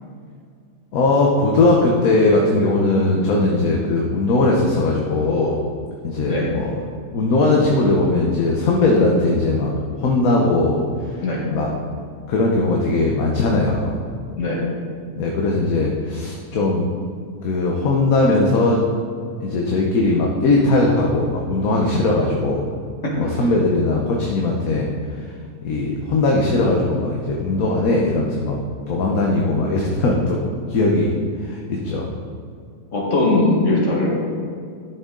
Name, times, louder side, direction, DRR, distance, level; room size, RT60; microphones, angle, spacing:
voice 1, 0.9-5.6 6.0-6.7 7.1-9.7 10.0-10.8 11.1-11.2 11.5-11.7 12.3-14.0 15.2-16.9 17.4-18.8 19.4-22.6 23.2-24.9 25.6-28.6 28.9-30.4 30.7-31.1 31.4-32.1, left 2 dB, 70° left, -1 dB, 1.4 m, -19 dB
voice 2, 14.4-14.7 23.0-23.2 32.9-34.1, left 2 dB, 55° left, -3 dB, 2.2 m, -20 dB
12.0 x 6.8 x 3.8 m, 2.3 s
omnidirectional pair, 1.6 m